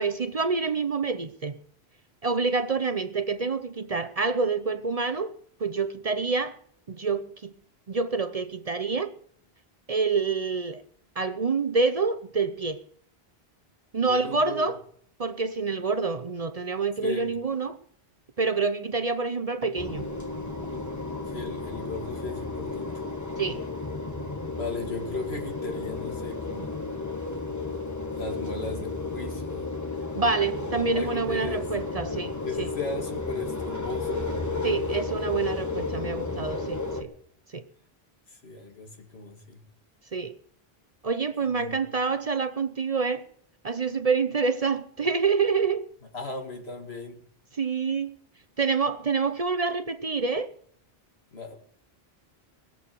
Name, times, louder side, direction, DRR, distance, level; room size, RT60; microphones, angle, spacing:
voice 1, 0.0-1.6 2.2-5.3 5.6-6.6 6.9-7.5 7.9-9.1 9.9-10.8 11.2-12.8 13.9-14.8 15.2-17.8 18.4-20.1 23.4-23.6 30.1-32.7 34.6-37.1 37.5-37.6 40.1-40.3 41.0-43.3 43.6-45.9 47.5-48.2 48.6-50.5, right 4 dB, 40° right, 0.7 m, -27 dB
voice 2, 14.1-14.7 17.0-17.3 21.3-23.0 24.5-26.9 28.1-29.7 30.9-31.7 32.4-34.3 34.6-35.0 38.3-39.6 41.4-41.8 46.1-47.2 51.3-51.6, left 2 dB, 80° left, 2.4 m, -37 dB
sound 1, 19.8-37.0, left 3 dB, 15° left, 1.3 m, -33 dB
20.5 x 7.8 x 6.8 m
omnidirectional pair, 1.1 m